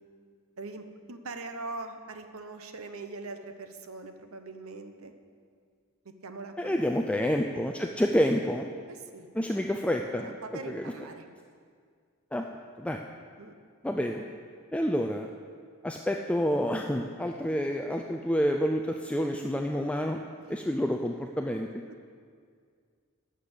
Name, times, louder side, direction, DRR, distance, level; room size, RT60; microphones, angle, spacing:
voice 1, 0.6-5.1 6.0-6.8 8.9-9.4 10.2-11.2 13.4-13.5 21.9-22.0, right 3 dB, 80° right, 7 dB, 0.9 m, -42 dB
voice 2, 6.6-8.7 9.3-10.3 10.6-10.9 12.3-12.5 12.8-13.0 13.8-14.2 14.7-15.3 15.8-20.2 20.5-21.7, equal, 5° left, 3 dB, 0.4 m, -28 dB
11.5 x 6.7 x 8.2 m, 2.1 s
head